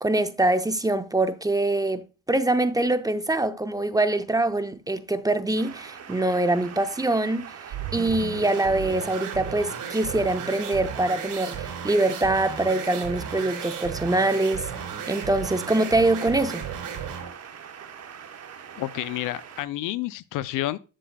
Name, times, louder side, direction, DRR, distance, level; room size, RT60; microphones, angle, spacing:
voice 1, 0.0-7.5 7.9-14.7 15.1-16.7, right 2 dB, 10° right, 0.6 m, -24 dB
sound 1, 5.6-19.6, right 8 dB, 45° right, 1.1 m, -43 dB
sound 2, 7.7-17.4, right 8 dB, 60° right, 2.9 m, -34 dB
voice 2, 18.8-20.8, left 15 dB, 65° left, 0.5 m, -30 dB
8.0 x 7.5 x 2.2 m
supercardioid pair, 65°, 35 cm